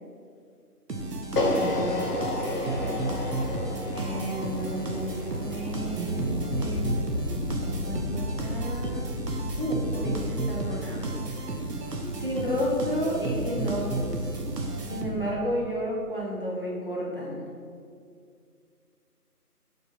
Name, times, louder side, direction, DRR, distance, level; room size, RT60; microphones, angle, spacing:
sound 1, 0.9-15.5, right 2 dB, 85° right, 1.2 m, -32 dB
sound 2, 1.4-7.5, left 1 dB, 80° left, 1.3 m, -32 dB
voice 1, 1.4-1.8 2.2-3.1 3.9-7.0 7.6-9.0 9.6-11.1 12.2-14.3 14.9-17.4, equal, 35° right, -5 dB, 1.0 m, -32 dB
sound 3, 4.9-10.3, left 2 dB, 55° left, 0.8 m, -34 dB
7.8 x 3.9 x 4.2 m, 2.3 s
figure-of-eight pair, 180°, 47 cm